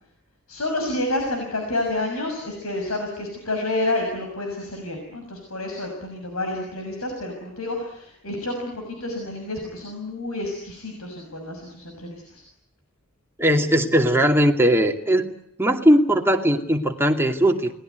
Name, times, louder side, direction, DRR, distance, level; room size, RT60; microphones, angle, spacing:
voice 1, 0.5-12.4, left 2 dB, 85° left, 2 dB, 6.4 m, -29 dB
voice 2, 13.4-15.2 15.6-17.7, equal, 10° right, 3 dB, 2.5 m, -19 dB
29.0 x 20.5 x 9.4 m, 0.72 s
head